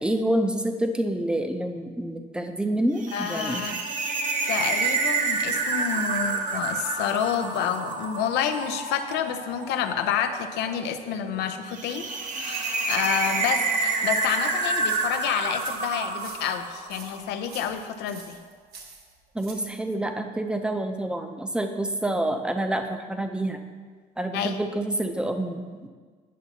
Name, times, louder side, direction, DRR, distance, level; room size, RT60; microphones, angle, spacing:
voice 1, 0.0-3.8 19.3-23.6 24.2-25.9, right 1 dB, 5° right, 5 dB, 0.5 m, -27 dB
sound 1, 3.0-17.3, right 4 dB, 50° right, 0.8 m, -29 dB
voice 2, 3.1-3.8 4.5-18.4 24.3-24.6, left 8 dB, 85° left, 8 dB, 0.5 m, -29 dB
sound 2, 14.1-19.8, right 4 dB, 70° right, 1.2 m, -46 dB
9.2 x 5.8 x 2.8 m, 1.5 s
cardioid pair, 110°, 17 cm